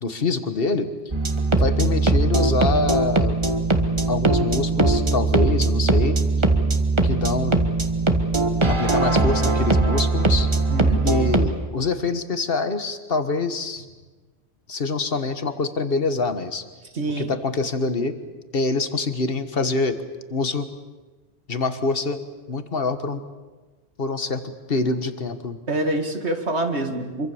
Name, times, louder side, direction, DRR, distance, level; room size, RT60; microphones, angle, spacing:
voice 1, 0.0-0.9 1.6-3.4 4.1-6.2 7.0-7.7 8.7-10.5 11.0-13.8 14.7-16.6 17.2-18.1 18.5-20.0 20.3-20.7 21.5-22.2 22.5-23.2 24.0-24.4 24.7-25.6, left 3 dB, 60° left, 10 dB, 1.7 m, -25 dB
sound 1, 1.1-11.5, right 3 dB, 25° right, 1.6 m, -20 dB
voice 2, 10.7-11.0 16.9-17.3 25.7-27.3, right 2 dB, 80° right, 5 dB, 2.5 m, -26 dB
26.0 x 24.0 x 7.1 m, 1.3 s
omnidirectional pair, 1.1 m